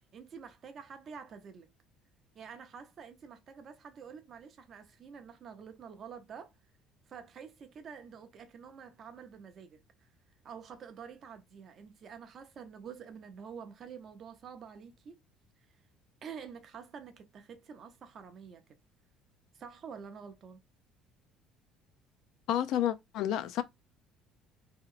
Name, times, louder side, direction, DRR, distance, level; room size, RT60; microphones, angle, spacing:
voice 1, 0.1-1.7 2.3-6.5 7.1-10.1 10.4-15.2 16.2-18.6 19.5-20.6, right 6 dB, 30° right, 0.5 m, -48 dB
voice 2, 22.5-23.6, left 11 dB, 55° left, 0.4 m, -30 dB
2.9 x 2.8 x 2.4 m
cardioid pair, 175°, 0 cm